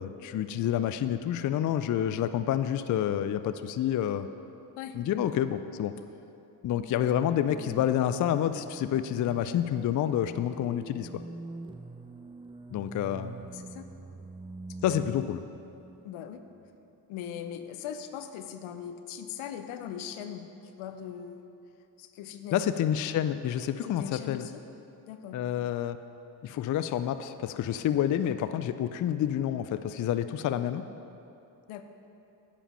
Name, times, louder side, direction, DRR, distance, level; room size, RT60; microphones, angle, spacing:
voice 1, 0.0-4.3 4.9-5.9 6.6-11.1 12.7-13.3 14.8-15.4 22.5-24.5 25.3-26.0 26.4-30.8, left 10 dB, 40° left, 11 dB, 0.4 m, -28 dB
sound 1, 6.8-16.7, right 3 dB, 10° right, 0.5 m, -45 dB
voice 2, 13.5-13.9 14.9-15.0 16.0-16.4 17.1-21.6 22.0-22.6 23.8-24.6 25.1-25.4 31.7-31.8, left 9 dB, 75° left, 9 dB, 0.7 m, -40 dB
9.8 x 5.2 x 5.6 m, 2.8 s
hypercardioid pair, 50°, 49 cm